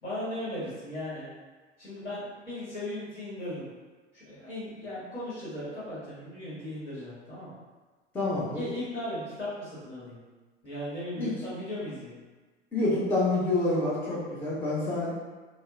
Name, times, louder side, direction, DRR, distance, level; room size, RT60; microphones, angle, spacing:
voice 1, 0.0-1.3 1.8-3.7 4.1-7.5 8.5-10.2 10.6-12.2, left 1 dB, 75° left, -10 dB, 1.3 m, -37 dB
voice 2, 8.1-8.6 11.2-11.3 12.7-15.1, left 2 dB, 5° left, -7 dB, 0.3 m, -27 dB
2.7 x 2.1 x 2.3 m, 1.3 s
figure-of-eight pair, 80°, 35 cm